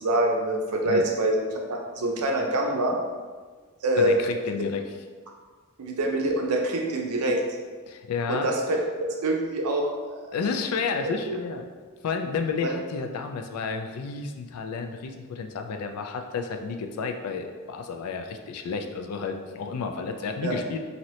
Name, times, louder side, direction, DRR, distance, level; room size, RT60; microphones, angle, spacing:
voice 1, 0.0-3.0 3.8-4.2 5.8-7.4 8.3-8.8 9.2-10.3 11.3-11.4 12.6-12.7 20.4-20.5, right 1 dB, 85° right, 2 dB, 0.5 m, -25 dB
voice 2, 4.0-4.8 7.9-8.5 10.3-11.6 12.0-20.8, left 5 dB, 90° left, 5 dB, 0.4 m, -31 dB
2.8 x 2.7 x 3.0 m, 1.5 s
head